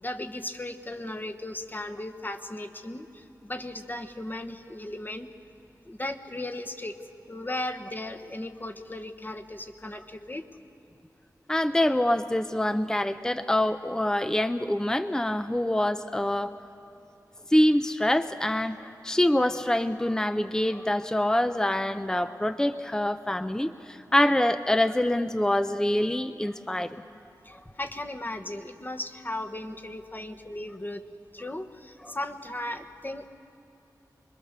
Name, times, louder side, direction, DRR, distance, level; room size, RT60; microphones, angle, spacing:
voice 1, 0.0-5.3 5.9-7.0 7.3-10.4 27.4-31.0 31.3-33.3, left 1 dB, 25° left, 7 dB, 1.2 m, -36 dB
voice 2, 11.5-16.5 17.5-27.0 27.5-27.6 32.0-32.2, left 1 dB, 10° left, 10 dB, 0.6 m, -25 dB
25.0 x 21.5 x 6.7 m, 2.8 s
wide cardioid pair, 70°, 7 cm